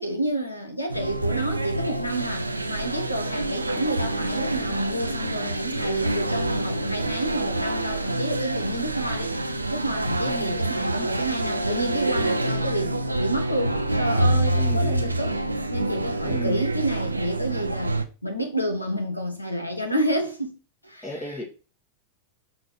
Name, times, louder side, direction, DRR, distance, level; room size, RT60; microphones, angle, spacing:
voice 1, 0.0-9.3 9.7-15.4 15.7-18.0 18.2-20.6 20.8-21.4, right 1 dB, 85° left, 1.5 m, -29 dB
sound 1, 0.9-18.1, right 2 dB, 80° right, 0.6 m, -26 dB
voice 2, 14.5-15.2 16.2-16.6 21.0-21.4, equal, 10° left, 1.7 m, -35 dB
6.5 x 4.2 x 4.3 m
figure-of-eight pair, 90°, 0 cm